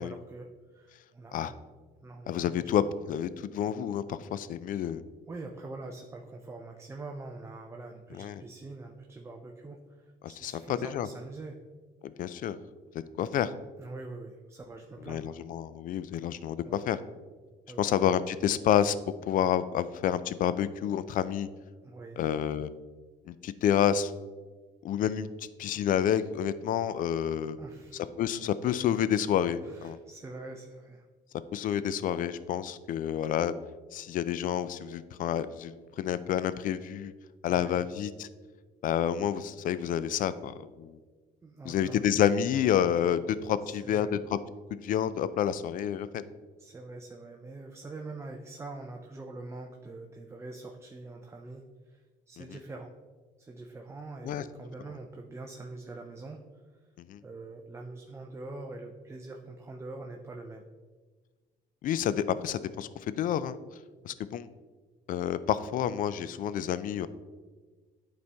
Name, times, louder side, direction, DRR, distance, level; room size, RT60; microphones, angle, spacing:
voice 1, 0.0-1.6 2.0-2.6 5.3-11.6 13.8-15.4 16.6-16.8 17.7-17.9 21.8-22.2 27.6-28.1 29.6-31.1 37.5-37.8 41.4-42.0 43.6-44.2 46.6-52.9 53.4-56.6 57.2-60.6, right 3 dB, 15° right, 2 dB, 0.5 m, -44 dB
voice 2, 2.3-5.0 8.1-8.4 10.2-11.1 12.0-12.6 12.9-13.5 15.1-17.0 17.8-21.5 22.2-22.7 23.3-24.1 24.8-27.6 28.2-30.0 31.5-33.5 33.9-37.1 37.4-38.3 38.8-41.0 41.6-44.4 44.7-46.2 52.4-52.5 54.2-54.4 57.1-57.2 61.8-62.9 63.2-63.6 64.0-64.5 65.1-67.1, left 9 dB, 55° left, 15 dB, 0.4 m, -29 dB
9.5 x 4.2 x 3.4 m, 1.4 s
cardioid pair, 110°, 17 cm